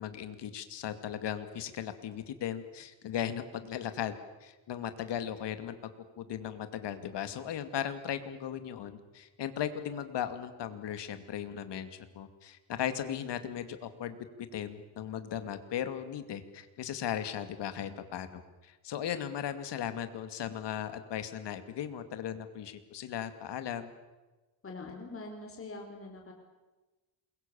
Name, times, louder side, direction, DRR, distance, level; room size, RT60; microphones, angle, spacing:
voice 1, 0.0-4.1 4.4-5.8 6.2-14.2 14.5-23.9, left 9 dB, 60° left, 10 dB, 2.5 m, -37 dB
voice 2, 24.6-26.3, left 3 dB, 25° left, 2 dB, 4.7 m, -43 dB
28.0 x 22.5 x 7.1 m, 1.2 s
cardioid pair, 125°, 48 cm